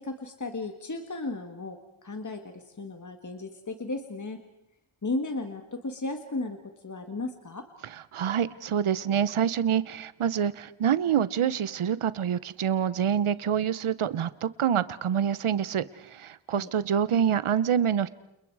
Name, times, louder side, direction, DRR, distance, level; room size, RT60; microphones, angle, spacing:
voice 1, 0.0-1.8 2.0-4.4 5.0-7.6 16.5-16.7, left 2 dB, 35° left, 6 dB, 1.8 m, -35 dB
voice 2, 7.9-18.1, right 9 dB, 85° right, 16 dB, 0.9 m, -26 dB
30.0 x 29.5 x 4.8 m, 0.87 s
wide cardioid pair, 95°, 49 cm